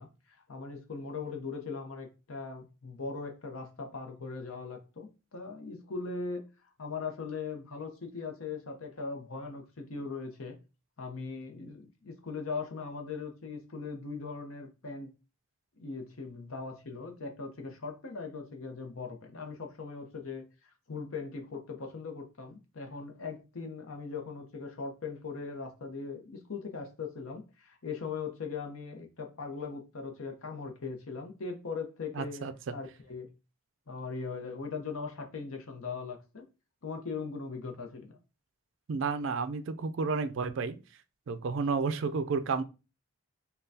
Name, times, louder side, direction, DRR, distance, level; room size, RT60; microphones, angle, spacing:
voice 1, 0.0-6.4 6.8-10.6 11.0-15.1 15.8-20.5 20.9-32.4 32.7-33.3 33.9-36.4 36.8-38.2, left 4 dB, 75° left, 0.8 m, -40 dB
voice 2, 32.2-32.5 38.9-40.8 41.3-42.6, right 4 dB, 60° right, 0.4 m, -31 dB
5.3 x 2.3 x 2.7 m
head